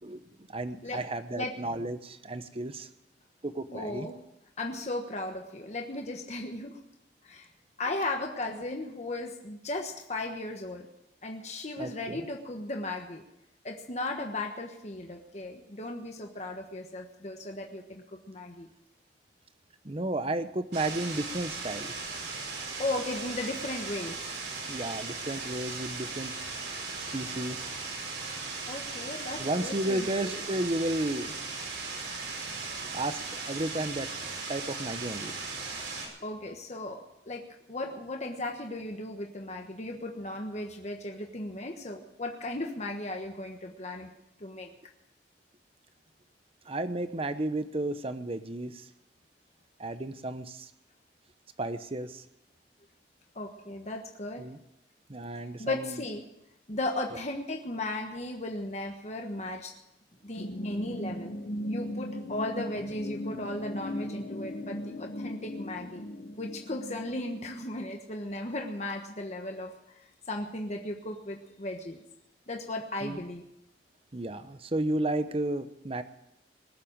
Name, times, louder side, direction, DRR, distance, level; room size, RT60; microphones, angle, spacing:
voice 1, 0.0-2.9 3.4-4.1 11.8-12.2 19.8-21.9 24.7-26.3 27.1-27.7 29.4-31.4 32.9-34.1 34.5-35.3 46.7-48.9 49.8-50.7 51.6-52.2 54.4-54.6 55.1-56.0 73.0-73.2 74.1-76.0, right 1 dB, 30° right, 11 dB, 0.9 m, -33 dB
voice 2, 3.7-4.2 4.6-6.8 7.2-7.5 7.8-10.9 11.2-13.2 13.6-18.7 22.8-24.2 28.7-30.1 36.2-44.1 44.4-44.7 53.3-54.4 55.6-56.2 56.7-59.7 60.2-61.3 61.6-66.0 66.4-72.0 72.5-73.4, left 2 dB, 40° left, 2 dB, 1.3 m, -36 dB
sound 1, 20.7-36.1, right 4 dB, 75° right, 5.1 m, -37 dB
sound 2, 60.4-67.9, left 1 dB, 55° left, 1.2 m, -38 dB
20.0 x 7.6 x 8.8 m, 0.85 s
head